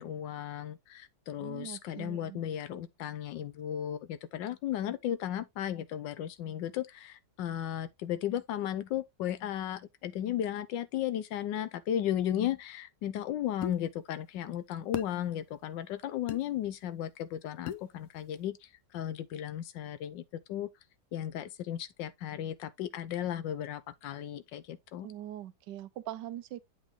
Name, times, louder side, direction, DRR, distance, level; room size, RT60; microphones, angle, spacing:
voice 1, 0.0-20.7 21.1-25.1, left 11 dB, 85° left, 1.3 m, -35 dB
voice 2, 1.4-2.4 25.0-26.6, right 12 dB, 75° right, 1.2 m, -42 dB
sound 1, 13.6-13.8 14.9-15.1 16.3-16.4 17.7-17.9, left 10 dB, 70° left, 0.9 m, -36 dB
8.1 x 3.9 x 3.6 m
omnidirectional pair, 1.9 m